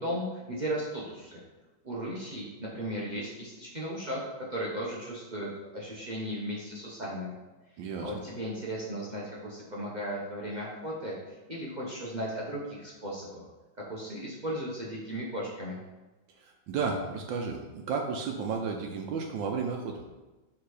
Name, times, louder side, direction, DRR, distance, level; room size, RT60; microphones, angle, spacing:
voice 1, 0.0-1.4 1.8-7.3 8.0-11.1 11.5-13.4 13.9-15.8, equal, 45° right, -5 dB, 0.5 m, -36 dB
voice 2, 7.8-8.1 16.4-20.0, right 5 dB, 70° right, 2 dB, 1.2 m, -33 dB
6.0 x 3.7 x 4.8 m, 1.1 s
omnidirectional pair, 2.3 m